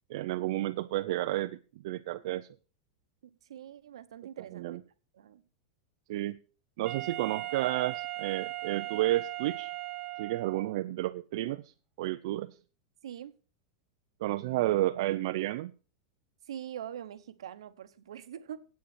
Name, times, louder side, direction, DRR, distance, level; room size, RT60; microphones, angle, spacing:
voice 1, 0.1-1.6 1.8-2.5 4.5-4.8 6.1-6.4 6.8-9.7 10.2-11.6 12.0-12.6 14.2-15.7, right 16 dB, 65° right, 0.5 m, -31 dB
voice 2, 3.2-4.7 5.1-5.4 13.0-13.4 16.5-18.7, right 10 dB, 90° right, 1.0 m, -43 dB
Wind instrument woodwind instrument, 6.8-10.8, right 16 dB, 40° right, 1.7 m, -38 dB
8.7 x 8.5 x 6.1 m
supercardioid pair, 125°, 3 cm